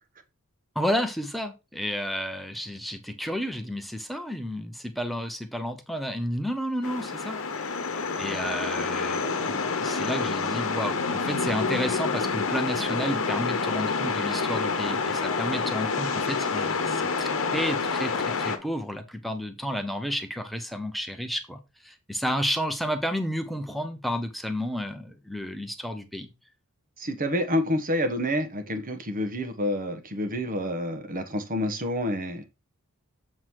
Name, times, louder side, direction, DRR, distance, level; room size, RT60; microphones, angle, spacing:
voice 1, 0.7-26.3, equal, ahead, 0.8 m, -31 dB
sound 1, 6.8-18.6, left 4 dB, 65° left, 1.1 m, -28 dB
voice 2, 27.0-32.4, left 1 dB, 40° right, 1.3 m, -28 dB
7.5 x 3.9 x 4.7 m
head